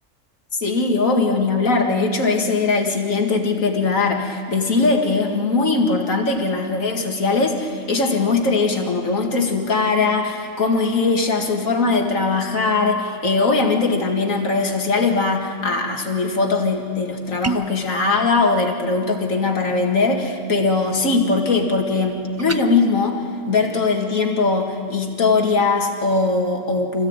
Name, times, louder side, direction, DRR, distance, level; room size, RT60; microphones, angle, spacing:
voice 1, 0.5-27.1, left 3 dB, 80° left, 2 dB, 2.5 m, -20 dB
sound 1, 17.4-17.8 22.4-22.6, right 5 dB, 25° right, 0.3 m, -26 dB
25.0 x 16.0 x 8.9 m, 2.2 s
omnidirectional pair, 1.4 m